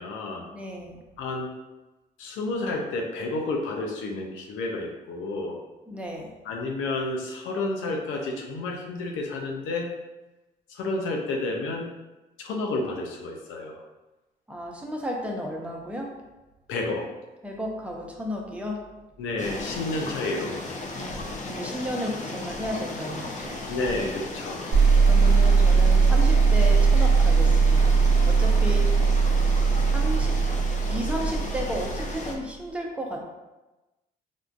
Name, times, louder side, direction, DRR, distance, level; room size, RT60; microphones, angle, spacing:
voice 1, 0.0-0.4 1.2-1.5 2.2-5.6 6.4-9.9 10.7-11.9 12.4-13.8 16.7-17.1 19.2-20.6 23.7-24.7, left 2 dB, 85° left, 1 dB, 0.6 m, -30 dB
voice 2, 0.5-1.0 5.9-6.3 14.5-16.1 17.4-18.8 21.0-23.6 25.1-29.1 29.8-30.3 30.9-33.2, equal, 5° right, -1 dB, 0.8 m, -33 dB
sound 1, 19.4-32.4, left 2 dB, 40° left, 0.6 m, -35 dB
sound 2, 24.7-32.2, right 5 dB, 55° right, 0.8 m, -20 dB
3.6 x 2.5 x 2.4 m, 1.1 s
supercardioid pair, 60°, 20 cm